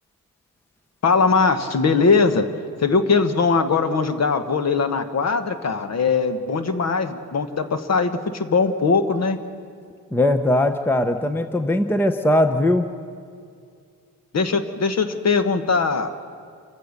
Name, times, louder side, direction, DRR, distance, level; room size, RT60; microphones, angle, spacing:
voice 1, 1.0-2.5 2.8-9.4 14.3-16.2, left 4 dB, 50° left, 9 dB, 1.3 m, -20 dB
voice 2, 10.1-12.9, left 1 dB, 5° left, 8 dB, 0.7 m, -20 dB
27.0 x 15.5 x 6.6 m, 2.3 s
wide cardioid pair, 155°, 34 cm